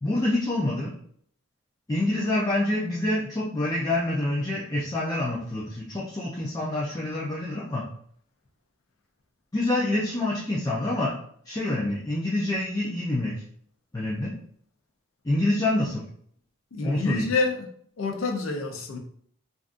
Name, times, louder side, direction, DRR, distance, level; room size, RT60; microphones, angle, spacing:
voice 1, 0.0-0.9 1.9-7.8 9.5-11.1 11.5-13.3 13.9-14.3 15.2-16.0 16.8-17.3, left 1 dB, 20° left, -5 dB, 0.4 m, -26 dB
voice 2, 16.7-17.7 18.0-19.0, left 3 dB, 90° left, 3 dB, 0.6 m, -27 dB
3.5 x 2.5 x 2.5 m, 0.62 s
head